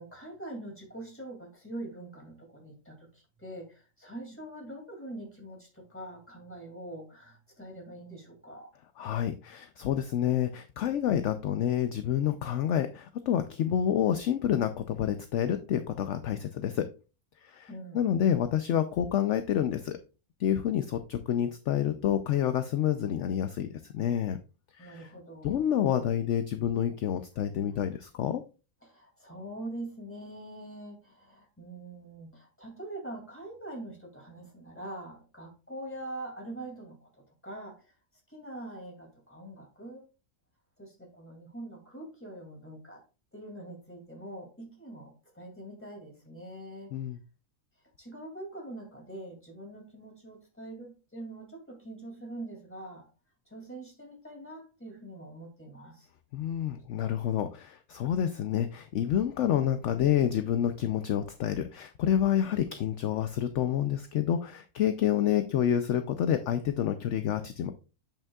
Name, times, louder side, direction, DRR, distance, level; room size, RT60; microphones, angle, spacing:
voice 1, 0.0-8.7 17.7-18.1 24.8-25.8 28.8-37.1 37.4-37.9 38.3-40.0 40.8-43.0 43.3-46.9 48.0-53.1 53.5-56.1, right 1 dB, 10° left, 2 dB, 2.3 m, -44 dB
voice 2, 9.0-16.9 17.4-17.7 17.9-20.0 20.4-23.7 23.9-24.4 24.8-25.1 25.4-28.4 46.9-47.2 56.3-67.7, left 10 dB, 65° left, 9 dB, 0.8 m, -28 dB
8.2 x 7.0 x 2.3 m, 0.32 s
omnidirectional pair, 1.6 m